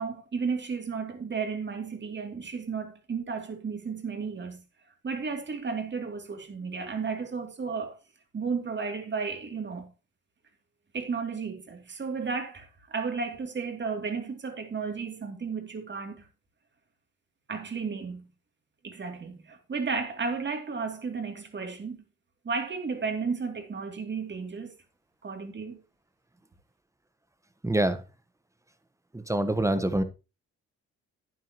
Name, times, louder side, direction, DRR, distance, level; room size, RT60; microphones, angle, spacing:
voice 1, 0.0-4.6 5.0-8.0 8.3-9.9 10.9-16.2 17.5-18.3 18.8-22.0 22.4-24.7 25.2-25.8, right 5 dB, 35° right, 2.8 m, -33 dB
voice 2, 27.6-28.0 29.1-30.0, right 1 dB, 10° right, 1.2 m, -25 dB
11.5 x 9.3 x 3.0 m
cardioid pair, 90°, 30 cm